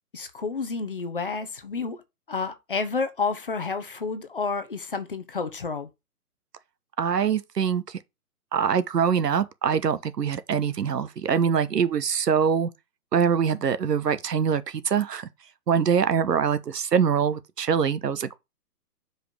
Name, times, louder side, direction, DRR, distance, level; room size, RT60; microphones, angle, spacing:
voice 1, 0.1-2.0 2.3-5.9, left 4 dB, 35° left, 0.8 m, -30 dB
voice 2, 7.0-8.0 8.5-12.7 13.1-15.3 15.7-18.4, right 7 dB, 90° right, 1.2 m, -24 dB
5.0 x 5.0 x 6.1 m
hypercardioid pair, 175°, 47 cm